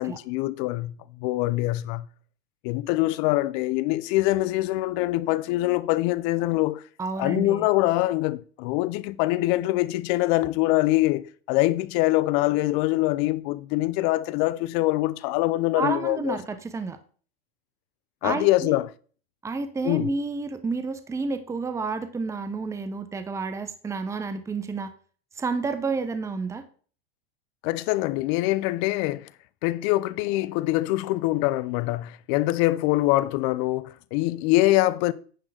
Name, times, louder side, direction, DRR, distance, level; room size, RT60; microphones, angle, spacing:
voice 1, 0.0-2.1 2.6-6.8 7.2-16.4 18.2-18.9 19.8-20.1 27.6-29.3 29.6-35.1, left 18 dB, 50° left, 0.7 m, -24 dB
voice 2, 7.0-7.7 15.8-17.0 18.2-18.8 19.4-24.9 25.4-26.6, right 4 dB, 10° right, 0.8 m, -30 dB
10.0 x 3.6 x 6.5 m
supercardioid pair, 125°, 32 cm